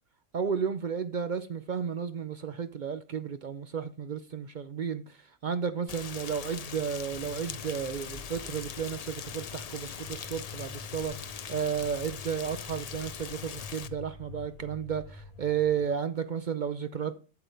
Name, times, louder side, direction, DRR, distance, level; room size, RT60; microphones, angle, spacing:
voice 1, 0.3-17.1, right 7 dB, 55° right, 0.5 m, -33 dB
Rain, 5.9-13.9, left 7 dB, 75° left, 0.3 m, -41 dB
sound 1, 7.1-15.9, left 5 dB, 35° left, 0.8 m, -47 dB
8.1 x 7.8 x 3.4 m
omnidirectional pair, 1.3 m